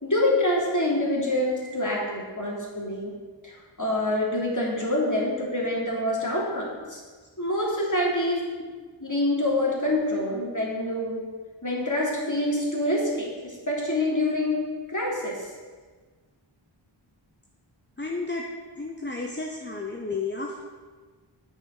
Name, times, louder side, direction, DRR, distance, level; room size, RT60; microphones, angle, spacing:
voice 1, 0.0-3.1 3.4-3.5 3.8-7.0 7.4-8.4 9.0-11.2 11.6-14.6 14.9-15.5, left 1 dB, 40° left, -3 dB, 3.1 m, -26 dB
voice 2, 18.0-18.4 18.8-20.6, left 3 dB, 25° left, 1 dB, 0.9 m, -32 dB
9.6 x 6.1 x 6.5 m, 1.4 s
wide cardioid pair, 40°, 48 cm